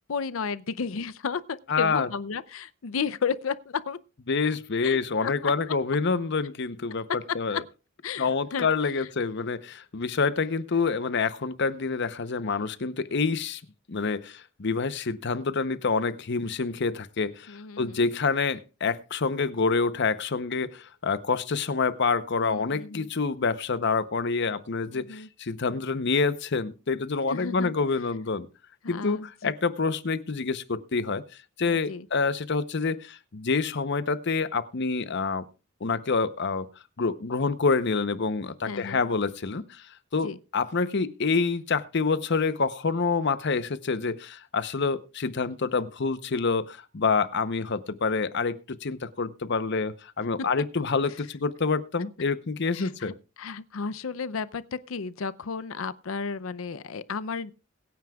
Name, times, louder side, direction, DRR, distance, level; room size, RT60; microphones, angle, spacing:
voice 1, 0.1-4.0 4.4-5.7 7.5-7.6 8.0-8.7 9.0-9.1 17.5-18.0 22.4-23.1 24.9-25.3 27.3-27.7 28.8-29.5 31.7-32.1 38.7-39.0 40.2-40.4 52.7-57.5, left 5 dB, 85° left, 0.6 m, -33 dB
voice 2, 1.7-2.1 4.3-7.1 7.3-7.6 8.2-13.6 13.9-28.5 28.9-31.2 31.6-35.4 35.8-36.7 37.0-39.9 40.1-53.1, left 4 dB, 60° left, 0.8 m, -27 dB
22.0 x 9.4 x 2.3 m
head